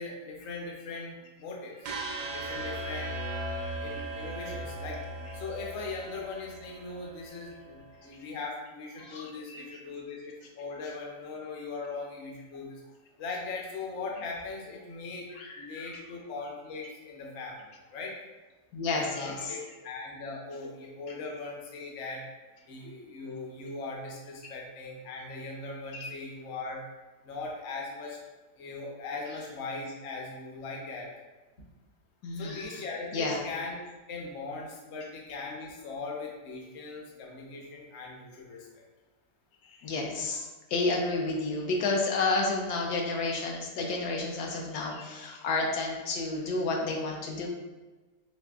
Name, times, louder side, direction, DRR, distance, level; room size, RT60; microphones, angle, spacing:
voice 1, 0.0-1.9 2.3-3.1 3.8-12.8 13.2-18.1 18.9-22.2 22.6-26.8 27.2-28.2 28.5-31.1 32.4-33.8 34.1-38.8, left 3 dB, 55° left, -1 dB, 0.9 m, -39 dB
sound 1, 1.8-7.9, right 1 dB, 90° right, 1.2 m, -38 dB
voice 2, 9.0-9.8 15.4-15.8 18.7-19.6 25.9-26.1 32.2-32.7 33.1-33.4 39.7-40.4 40.7-47.5, left 3 dB, 85° left, 0 dB, 1.1 m, -31 dB
4.1 x 3.4 x 2.3 m, 1.2 s
omnidirectional pair, 1.7 m